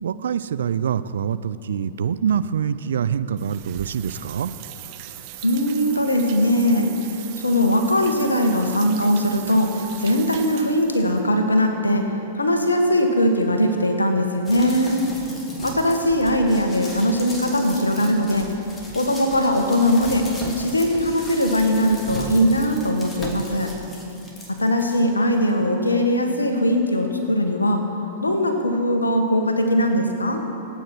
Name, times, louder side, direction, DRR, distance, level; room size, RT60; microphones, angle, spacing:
voice 1, 0.0-4.5, right 8 dB, 65° right, 14 dB, 0.5 m, -25 dB
sound 1, 3.4-11.2, right 13 dB, 45° right, 1.1 m, -39 dB
voice 2, 5.4-7.1 7.4-12.0 12.4-15.0 15.6-18.5 18.9-20.3 20.6-23.7 24.5-27.8 28.2-30.4, equal, 85° left, 4 dB, 1.7 m, -20 dB
sound 2, 14.4-25.0 25.5-25.6, equal, 15° left, 3.0 m, -37 dB
27.0 x 9.0 x 4.6 m, 2.8 s
figure-of-eight pair, 100°, 0 cm